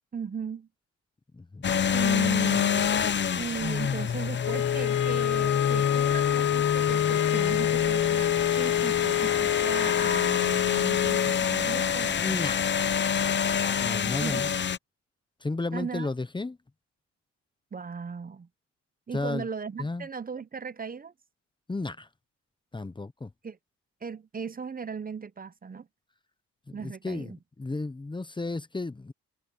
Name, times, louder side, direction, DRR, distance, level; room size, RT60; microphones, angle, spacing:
voice 1, 0.1-0.7 1.9-2.9 3.3-12.4 14.0-14.4 15.7-16.1 17.7-18.5 19.1-21.1 23.4-23.6 24.0-25.9 26.7-27.4, right 6 dB, 30° right, 1.0 m, -37 dB
voice 2, 1.3-1.7 2.2-2.4 12.2-12.7 13.8-14.5 15.4-16.6 19.1-19.5 19.8-20.1 21.7-22.1 22.7-23.3 26.7-29.1, left 3 dB, 15° left, 1.0 m, -33 dB
sound 1, 1.6-14.8, left 7 dB, 40° left, 0.9 m, -27 dB
sound 2, 4.4-11.4, left 12 dB, 80° left, 1.2 m, -27 dB
cardioid pair, 90°, 30 cm